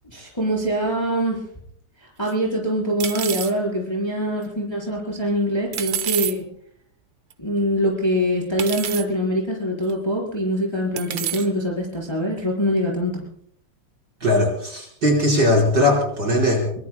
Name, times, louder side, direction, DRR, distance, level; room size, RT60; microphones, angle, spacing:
voice 1, 0.1-1.4 2.0-6.4 7.4-13.2, equal, 10° left, -3 dB, 4.3 m, -24 dB
sound 1, 2.3-2.4 3.0-3.5 5.7-6.3 7.3-7.4 8.6-9.0 9.9-10.0 11.0-11.5, right 10 dB, 85° right, 1.0 m, -28 dB
voice 2, 14.2-16.8, left 1 dB, 35° right, 0 dB, 5.1 m, -19 dB
24.0 x 24.0 x 2.2 m, 0.66 s
omnidirectional pair, 3.5 m